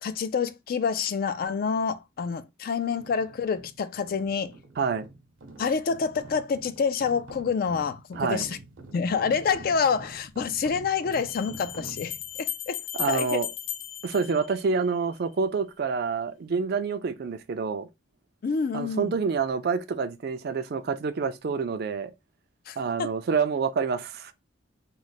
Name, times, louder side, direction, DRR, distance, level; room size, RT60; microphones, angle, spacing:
voice 1, 0.0-4.5 5.6-8.6 8.9-12.8 13.1-13.4 18.4-19.1 22.7-23.1, left 5 dB, 50° left, 0.3 m, -27 dB
sound 1, 2.9-12.4, right 2 dB, 80° right, 0.8 m, -47 dB
voice 2, 4.8-5.1 8.2-8.5 12.9-13.5 14.0-17.9 18.7-22.1 22.8-24.3, right 5 dB, 50° right, 0.4 m, -27 dB
sound 2, 9.5-9.6 11.1-15.1, left 11 dB, 85° left, 0.7 m, -36 dB
3.1 x 2.1 x 3.9 m
head